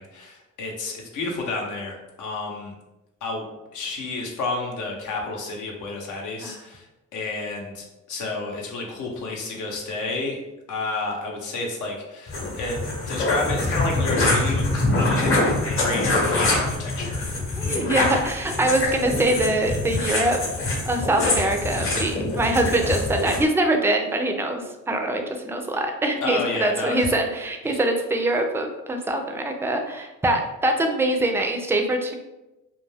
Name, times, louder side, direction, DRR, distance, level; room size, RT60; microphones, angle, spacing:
voice 1, 0.0-2.7 3.2-3.4 3.7-6.8 7.1-10.4 10.7-17.3 26.2-27.1 27.6-27.8, left 3 dB, 80° left, 0 dB, 0.7 m, -30 dB
sound 1, 12.3-23.4, left 2 dB, 45° left, 0.8 m, -24 dB
voice 2, 17.6-32.2, right 1 dB, 10° right, 4 dB, 0.3 m, -24 dB
2.3 x 2.2 x 3.2 m, 0.99 s
cardioid pair, 90°, 30 cm